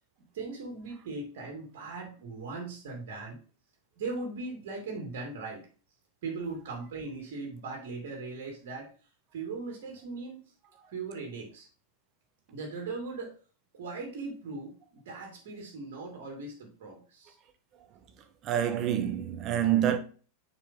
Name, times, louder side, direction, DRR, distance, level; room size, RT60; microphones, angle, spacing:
voice 1, 0.3-3.4 4.0-5.7 6.2-8.9 9.3-10.4 10.9-11.7 12.5-13.4 13.7-17.3, right 3 dB, 55° right, 2.6 m, -39 dB
voice 2, 18.4-20.0, right 10 dB, 35° right, 1.1 m, -27 dB
7.2 x 5.5 x 3.8 m
figure-of-eight pair, 90°, 0 cm